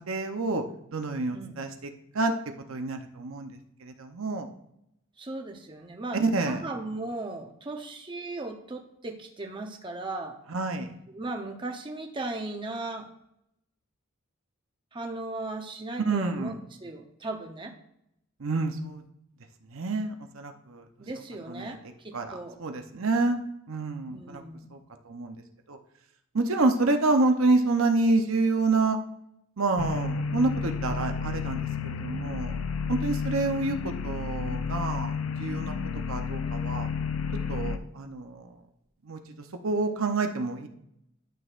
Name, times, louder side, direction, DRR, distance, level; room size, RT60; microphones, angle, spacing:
voice 1, 0.1-0.6 0.9-1.9 2.1-2.3 2.7-4.5 6.1-6.6 10.5-10.9 16.0-16.6 18.4-19.0 19.7-20.8 21.5-21.8 22.1-22.3 22.6-23.4 23.7-24.4 24.7-24.8 25.1-25.3 25.7-25.8 26.3-29.0 29.6-32.6 32.9-35.1 35.4-35.7 36.1-36.9 37.5-38.5 39.1-39.2 39.6-40.7, right 3 dB, 70° right, 6 dB, 0.8 m, -28 dB
voice 2, 1.3-1.6 5.2-6.2 6.5-10.4 11.1-13.1 14.9-16.5 16.8-17.7 21.0-22.6 24.1-24.7 35.8-36.0, right 2 dB, 25° right, 3 dB, 0.8 m, -37 dB
sound 1, 29.8-37.8, left 5 dB, 75° left, 0.5 m, -31 dB
12.0 x 6.3 x 2.5 m, 0.78 s
head